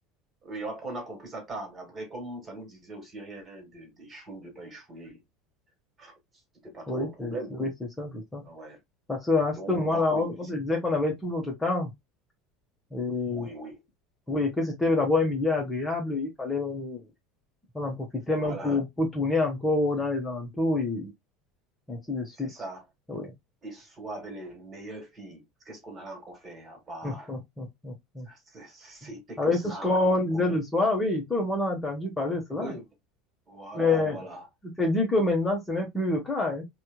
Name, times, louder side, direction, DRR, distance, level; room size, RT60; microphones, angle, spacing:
voice 1, 0.4-5.2 6.0-6.1 6.6-7.6 8.4-8.8 9.6-10.3 13.3-13.8 18.3-18.8 22.4-22.9 23.6-27.3 28.3-29.9 30.3-30.6 32.5-32.9 33.5-34.5, right 2 dB, 25° right, 1.9 m, -40 dB
voice 2, 6.9-7.3 7.6-7.7 8.0-8.4 9.1-11.9 12.9-13.5 14.3-17.0 17.7-17.9 18.3-21.1 21.9-22.5 23.1-23.3 27.0-28.3 29.4-32.7 33.7-34.2 34.8-36.6, left 2 dB, 15° left, 1.1 m, -27 dB
4.3 x 2.3 x 2.2 m
figure-of-eight pair, 70°, 0 cm